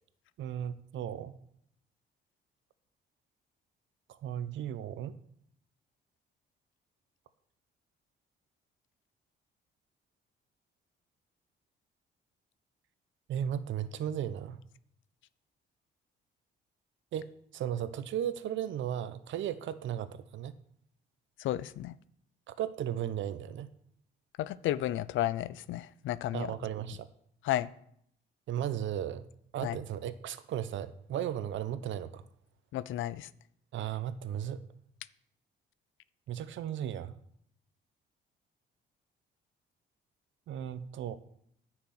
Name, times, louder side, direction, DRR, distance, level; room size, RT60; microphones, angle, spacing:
voice 1, 0.4-1.3 4.2-5.1 13.3-14.6 17.1-17.3 17.5-20.6 22.5-23.7 26.3-27.1 28.5-29.3 29.5-32.2 33.7-34.6 36.3-37.1 40.5-41.2, right 10 dB, 75° right, 0.8 m, -35 dB
voice 2, 21.4-21.9 24.4-26.5 27.4-27.7 29.6-29.8 32.7-33.3, left 13 dB, 80° left, 0.5 m, -32 dB
10.0 x 6.0 x 7.7 m
cardioid pair, 90°, 20 cm